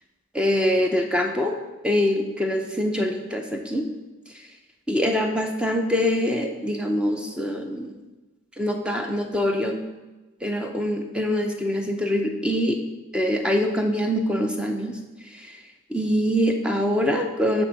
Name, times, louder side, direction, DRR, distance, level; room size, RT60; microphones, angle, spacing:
voice 1, 0.3-1.5 1.8-3.9 4.9-8.0 8.6-9.8 10.4-12.8 13.1-15.0 15.3-15.6 15.9-17.7, equal, 5° right, 3 dB, 0.5 m, -24 dB
8.6 x 3.6 x 6.3 m, 1.2 s
head